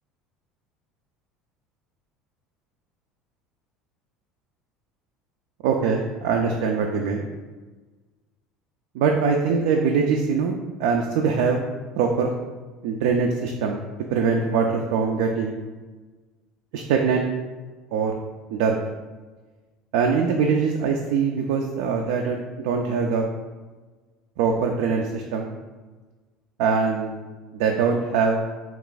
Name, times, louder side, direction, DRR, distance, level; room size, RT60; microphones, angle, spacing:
voice 1, 5.6-7.3 8.9-11.6 11.9-12.3 12.8-13.8 14.1-15.5 16.7-17.2 17.9-18.1 18.5-18.8 19.9-23.2 24.4-25.5 26.6-27.1 27.5-28.4, right 5 dB, 80° right, 2 dB, 0.3 m, -22 dB
3.4 x 2.4 x 3.9 m, 1.3 s
supercardioid pair, 105°, 0 cm